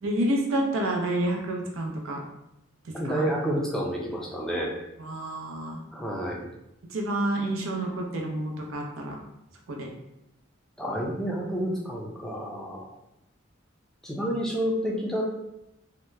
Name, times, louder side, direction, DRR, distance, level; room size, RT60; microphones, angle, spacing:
voice 1, 0.0-2.2 3.1-3.3 5.0-5.8 6.9-9.1 9.7-9.9, right 1 dB, 80° right, 0 dB, 0.6 m, -29 dB
voice 2, 2.9-4.7 5.9-6.4 10.8-12.9 14.0-15.2, equal, ahead, -3 dB, 0.4 m, -29 dB
2.8 x 2.2 x 3.2 m, 0.86 s
head